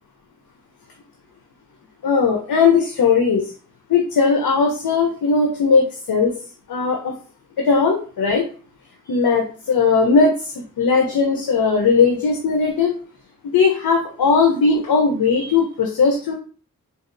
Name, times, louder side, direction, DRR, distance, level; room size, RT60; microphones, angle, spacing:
voice 1, 2.0-3.5 3.9-6.3 6.7-7.1 7.6-8.4 9.1-12.9 13.5-16.3, left 5 dB, 90° left, 2 dB, 0.6 m, -18 dB
4.0 x 2.2 x 2.5 m, 0.40 s
wide cardioid pair, 80°, 35 cm